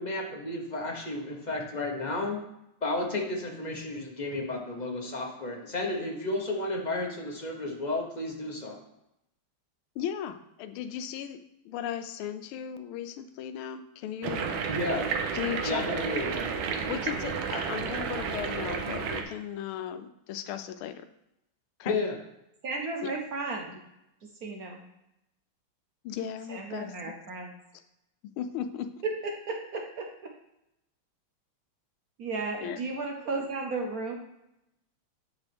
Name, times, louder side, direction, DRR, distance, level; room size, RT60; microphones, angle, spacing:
voice 1, 0.0-2.4 2.8-8.8 14.7-15.0 15.6-16.5 21.8-22.2, left 2 dB, 30° left, 1 dB, 1.0 m, -32 dB
voice 2, 10.0-14.5 15.3-15.8 16.9-21.0 21.8-21.9 23.0-23.1 26.0-26.9 28.2-28.9 32.6-32.9, left 9 dB, 90° left, 10 dB, 1.5 m, -36 dB
sound 1, 14.2-19.2, right 6 dB, 75° right, 1.5 m, -31 dB
voice 3, 22.6-23.8 24.2-24.8 26.5-27.5 29.2-30.3 32.2-34.2, right 3 dB, 55° right, 2 dB, 1.1 m, -34 dB
9.0 x 5.6 x 3.5 m, 0.85 s
omnidirectional pair, 2.3 m